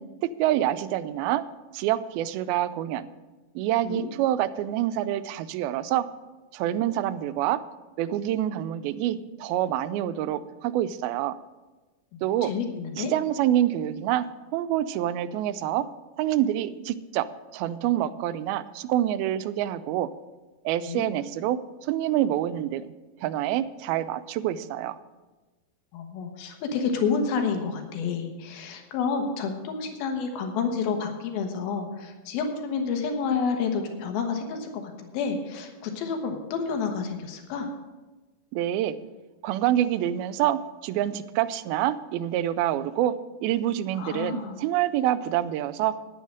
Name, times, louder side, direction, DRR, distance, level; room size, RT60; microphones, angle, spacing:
voice 1, 0.4-1.4 1.7-3.1 3.6-6.1 6.5-7.6 8.0-11.4 12.2-12.5 13.0-15.9 16.2-17.3 17.5-20.1 20.7-22.9 23.2-25.0 38.5-39.0 39.4-43.1 43.4-45.9, right 12 dB, 85° right, 14 dB, 2.4 m, -26 dB
voice 2, 12.1-13.1 20.9-21.1 25.9-37.7 43.9-44.6, left 5 dB, 85° left, 4 dB, 3.2 m, -29 dB
10.5 x 9.2 x 6.5 m, 1.2 s
omnidirectional pair, 4.3 m